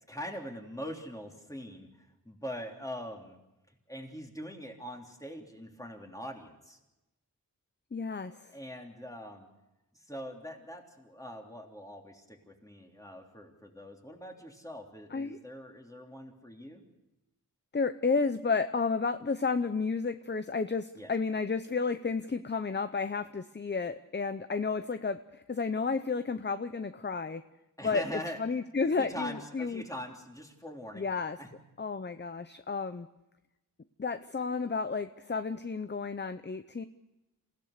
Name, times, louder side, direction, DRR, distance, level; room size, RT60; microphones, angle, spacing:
voice 1, 0.1-3.4 3.9-6.8 8.5-9.5 9.9-16.8 20.9-21.1 27.8-28.4 29.0-31.1 31.4-31.6, equal, 10° left, 1 dB, 3.3 m, -43 dB
voice 2, 7.9-8.5 15.1-15.4 17.7-27.4 27.8-29.8 30.9-31.4 31.8-33.1 34.0-36.8, left 4 dB, 30° left, 11 dB, 0.7 m, -32 dB
28.0 x 16.5 x 6.6 m, 0.96 s
wide cardioid pair, 85°, 35 cm